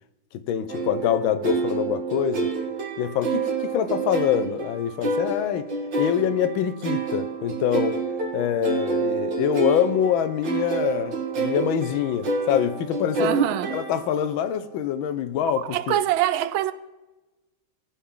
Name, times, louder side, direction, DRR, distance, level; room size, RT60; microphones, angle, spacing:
voice 1, 0.3-2.5 3.0-5.7 6.0-8.0 8.3-13.4 13.7-16.0, left 9 dB, 80° left, 1.5 m, -25 dB
sound 1, 0.7-14.3, right 4 dB, 65° right, 2.3 m, -28 dB
voice 2, 13.2-13.7 15.6-16.7, right 12 dB, 85° right, 1.4 m, -24 dB
18.5 x 7.0 x 3.7 m
omnidirectional pair, 2.2 m